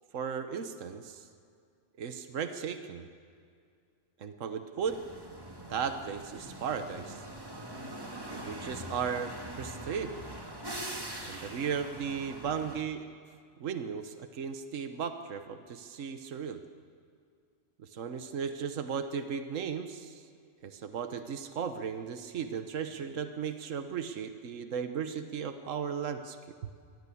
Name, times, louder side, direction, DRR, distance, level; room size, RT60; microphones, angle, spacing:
voice 1, 0.1-1.3 2.0-3.1 4.2-5.0 5.7-7.2 8.3-10.1 11.2-13.1 13.6-16.6 17.8-20.2 20.6-26.4, right 6 dB, 75° right, 8 dB, 1.4 m, -36 dB
sound 1, 4.8-12.8, right 1 dB, 20° right, 1.8 m, -43 dB
23.5 x 17.0 x 8.5 m, 2.3 s
omnidirectional pair, 1.3 m